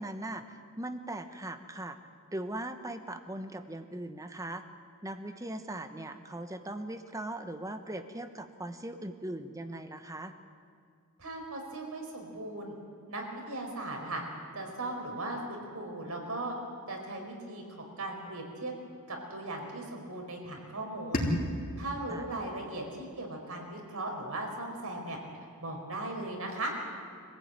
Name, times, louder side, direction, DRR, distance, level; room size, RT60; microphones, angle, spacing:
voice 1, 0.0-2.0 2.3-4.6 5.0-10.3 22.1-22.3, right 1 dB, 15° right, 8 dB, 1.1 m, -39 dB
voice 2, 11.2-12.7 13.1-14.2 14.5-16.5 16.9-18.7 19.1-21.2 21.8-25.2 25.6-26.7, right 2 dB, 75° right, 1 dB, 4.9 m, -38 dB
sound 1, 21.1-24.0, equal, 40° left, 3.4 m, -36 dB
25.0 x 15.5 x 9.2 m, 2.2 s
head